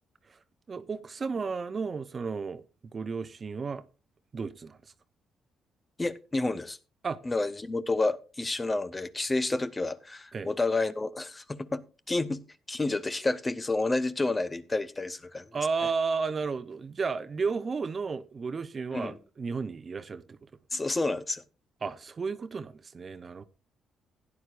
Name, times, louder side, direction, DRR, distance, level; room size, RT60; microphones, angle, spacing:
voice 1, 0.7-3.8 4.3-4.8 7.0-7.2 10.3-10.5 15.5-20.5 21.8-23.4, right 5 dB, 40° right, 0.7 m, -33 dB
voice 2, 6.0-6.8 7.2-12.4 12.7-15.5 18.9-19.2 20.7-21.4, left 2 dB, 20° left, 0.8 m, -30 dB
16.5 x 9.8 x 2.5 m
cardioid pair, 90°, 0 cm